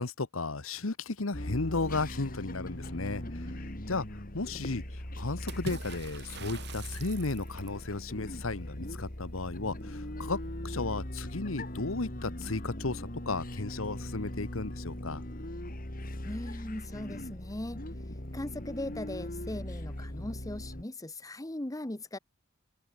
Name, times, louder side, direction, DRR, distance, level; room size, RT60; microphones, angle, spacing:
voice 1, 0.0-3.5 3.9-4.0 4.3-10.4 10.6-15.2, left 3 dB, 80° left, 1.4 m, -34 dB
sound 1, 1.3-20.8, left 1 dB, 45° left, 3.3 m, -40 dB
Water / Splash splatter, 5.5-7.8, right 4 dB, 55° right, 6.0 m, -44 dB
voice 2, 16.2-17.8 18.3-22.2, left 1 dB, 15° left, 1.0 m, -39 dB
open air
head